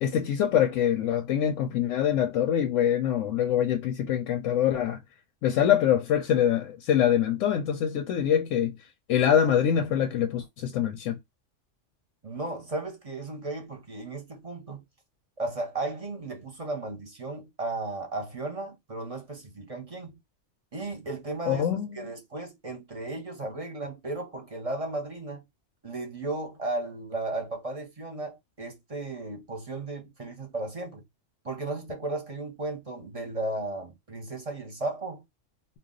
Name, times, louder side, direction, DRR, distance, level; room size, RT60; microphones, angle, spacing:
voice 1, 0.0-5.0 5.4-8.8 9.1-11.2 21.5-22.1, left 9 dB, 90° left, 0.9 m, -24 dB
voice 2, 12.2-14.8 15.4-20.2 20.7-21.7 21.9-25.4 25.8-31.0 31.4-35.2, right 2 dB, 35° right, 0.6 m, -35 dB
2.3 x 2.3 x 3.6 m
omnidirectional pair, 1.3 m